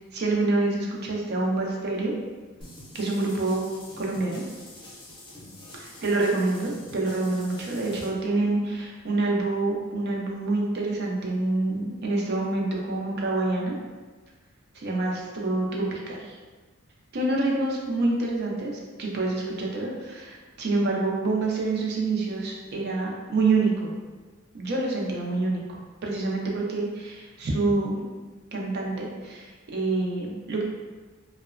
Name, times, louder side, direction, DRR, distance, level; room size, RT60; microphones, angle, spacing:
voice 1, 0.1-2.1 2.9-3.7 4.0-4.4 5.7-13.7 14.7-16.3 17.1-23.9 24.5-25.6 26.0-28.1 28.5-30.6, right 2 dB, 55° right, -2 dB, 0.5 m, -27 dB
sound 1, 2.6-8.1, left 1 dB, 25° left, 0.6 m, -46 dB
2.8 x 2.1 x 2.5 m, 1.3 s
head